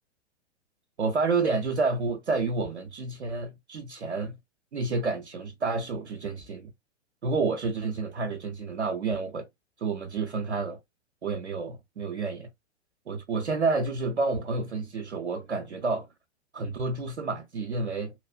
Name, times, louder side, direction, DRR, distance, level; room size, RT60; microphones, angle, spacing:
voice 1, 1.0-4.4 4.7-6.7 7.2-9.5 9.8-10.8 11.2-12.5 13.1-16.1 16.5-18.1, right 4 dB, 80° right, 0.6 m, -29 dB
3.1 x 2.0 x 2.3 m
figure-of-eight pair, 105°, 34 cm